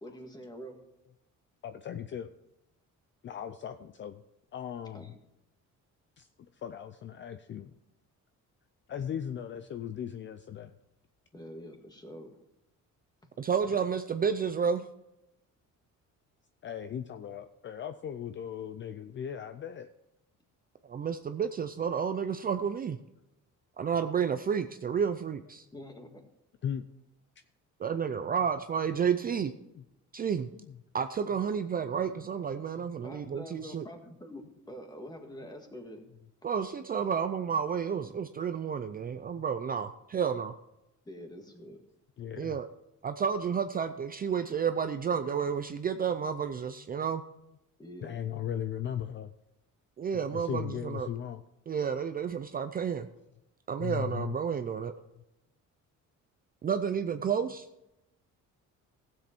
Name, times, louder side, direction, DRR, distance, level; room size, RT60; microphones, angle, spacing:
voice 1, 0.0-0.8 4.9-5.2 11.3-12.4 25.7-26.1 33.0-36.1 41.1-41.8 47.8-48.2, equal, 15° left, 4 dB, 1.7 m, -45 dB
voice 2, 1.6-2.3 3.2-4.2 4.5-5.1 6.2-6.3 6.5-7.7 8.9-10.7 16.6-19.9 26.6-26.9 28.2-28.4 29.6-29.8 30.5-30.8 32.7-33.0 39.4-39.5 42.2-42.6 48.0-49.3 50.1-51.4 53.8-54.4, left 9 dB, 40° left, 10 dB, 0.5 m, -38 dB
voice 3, 13.4-14.8 20.9-23.0 23.8-25.6 27.8-29.5 30.1-30.5 30.9-33.8 36.4-40.6 42.4-42.7 43.0-47.2 50.0-51.1 51.7-53.1 53.7-54.9 56.6-57.7, right 7 dB, 30° right, 9 dB, 0.5 m, -31 dB
16.0 x 7.6 x 4.5 m, 0.87 s
cardioid pair, 150°, 31 cm